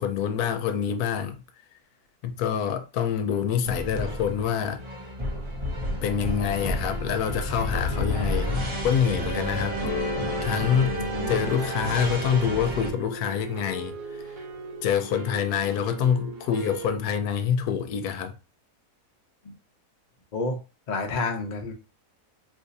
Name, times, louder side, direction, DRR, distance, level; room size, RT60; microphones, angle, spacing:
voice 1, 0.0-1.4 2.2-4.8 6.0-10.0 10.4-11.0 11.3-14.2 14.8-18.3, left 8 dB, 85° left, 1.1 m, -26 dB
sound 1, 3.6-12.9, equal, 30° right, 0.6 m, -31 dB
sound 2, 9.0-17.0, right 5 dB, 70° right, 1.0 m, -40 dB
sound 3, 9.8-15.0, left 4 dB, 65° left, 1.2 m, -37 dB
voice 2, 11.0-11.4 19.4-19.5 20.3-20.6 20.9-21.7, left 3 dB, 45° left, 0.5 m, -30 dB
2.6 x 2.5 x 3.9 m
omnidirectional pair, 1.6 m